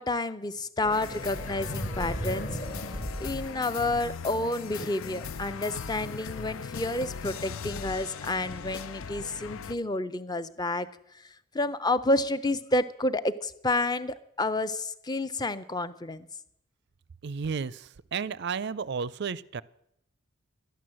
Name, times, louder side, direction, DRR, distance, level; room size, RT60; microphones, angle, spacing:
voice 1, 0.0-2.5 3.2-10.9 11.5-16.3, left 2 dB, 20° left, 13 dB, 0.6 m, -30 dB
sound 1, 0.8-4.3, equal, 35° left, 1.5 m, -36 dB
sound 2, 0.9-9.8, left 6 dB, 65° left, 0.5 m, -39 dB
voice 2, 17.2-19.6, right 6 dB, 50° right, 20 dB, 0.4 m, -33 dB
12.5 x 11.0 x 7.6 m, 0.77 s
head